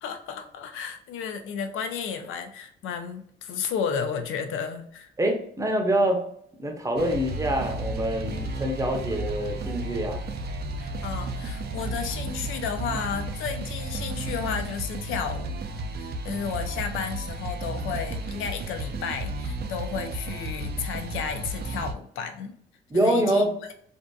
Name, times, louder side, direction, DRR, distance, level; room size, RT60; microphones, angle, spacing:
voice 1, 0.0-5.1 10.8-15.7 16.0-22.5 22.9-23.4, left 6 dB, 85° left, 8 dB, 0.5 m, -33 dB
voice 2, 5.2-6.2 6.6-10.2 22.9-23.5, right 1 dB, 15° right, 2 dB, 0.6 m, -25 dB
sound 1, 7.0-21.9, right 2 dB, 55° right, 0.4 m, -33 dB
2.6 x 2.4 x 2.3 m, 0.65 s
cardioid pair, 90°, 20 cm